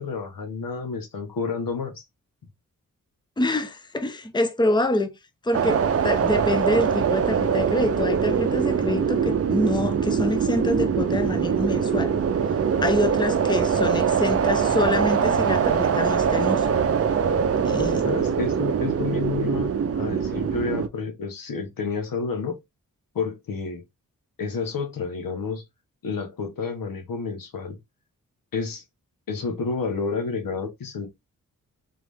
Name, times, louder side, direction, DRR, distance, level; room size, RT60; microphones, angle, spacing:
voice 1, 0.0-2.0 14.0-14.1 17.6-19.7 19.9-22.6 23.1-23.8 24.4-25.6 26.0-27.8 28.5-28.8 29.3-31.1, left 5 dB, 80° left, 1.3 m, -30 dB
voice 2, 3.4-5.1 5.4-12.1 12.8-16.7 17.6-18.1, left 1 dB, 15° left, 0.7 m, -26 dB
sound 1, 5.5-20.9, right 7 dB, 45° right, 0.6 m, -23 dB
3.8 x 3.2 x 3.4 m
cardioid pair, 65°, 33 cm